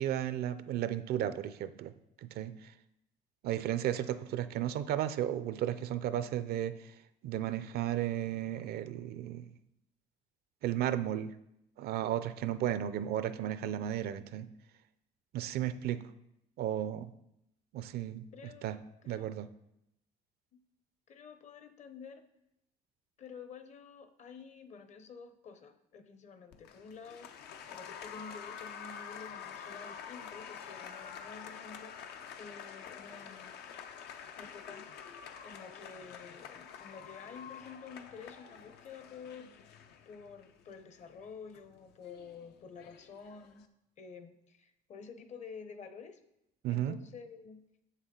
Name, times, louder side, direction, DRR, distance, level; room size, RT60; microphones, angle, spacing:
voice 1, 0.0-1.9 2.2-2.7 3.4-6.9 7.2-9.5 10.6-11.3 11.8-14.5 15.3-16.0 16.6-17.1 17.7-18.2 18.6-18.7 19.1-19.5 46.6-47.0, right 11 dB, 70° right, 13 dB, 0.5 m, -34 dB
voice 2, 18.3-19.3 20.5-20.6 21.1-22.2 23.2-32.1 32.4-33.6 34.4-39.8 40.1-43.6 44.0-46.2 46.7-47.6, left 5 dB, 45° left, 10 dB, 0.7 m, -50 dB
Applause, 26.5-43.6, left 7 dB, 80° left, 0.6 m, -48 dB
7.2 x 6.4 x 3.7 m, 0.83 s
cardioid pair, 110°, 17 cm